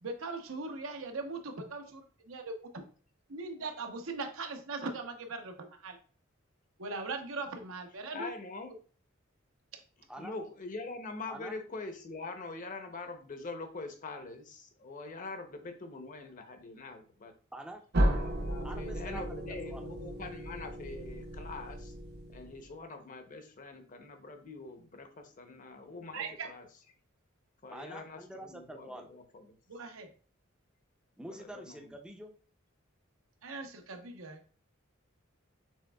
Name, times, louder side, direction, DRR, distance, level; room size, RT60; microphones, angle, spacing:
voice 1, 0.0-2.8 3.3-6.0 6.8-8.3 26.1-26.5 29.7-30.1 33.4-34.4, right 3 dB, 85° right, 4 dB, 0.8 m, -40 dB
voice 2, 8.1-8.7 10.2-17.3 18.1-21.9 22.3-26.6 27.6-29.4 31.3-31.9, left 3 dB, 40° left, 6 dB, 0.6 m, -44 dB
voice 3, 11.3-11.6 17.5-17.8 18.6-19.9 27.7-29.1 31.2-32.3, right 1 dB, 5° right, 3 dB, 0.4 m, -46 dB
sound 1, 17.9-22.7, right 1 dB, 55° right, 0.6 m, -34 dB
6.3 x 3.4 x 2.2 m, 0.41 s
head